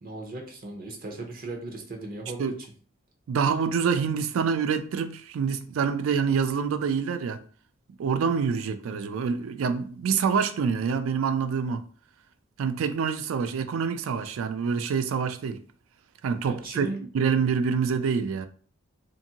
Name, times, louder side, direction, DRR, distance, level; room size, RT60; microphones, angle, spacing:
voice 1, 0.0-2.5 16.5-17.0, right 2 dB, 45° right, 0.7 m, -37 dB
voice 2, 3.3-7.4 8.0-11.8 12.6-15.6 16.2-16.9 17.1-18.5, right 6 dB, 75° right, 0.3 m, -26 dB
2.6 x 2.5 x 2.8 m
head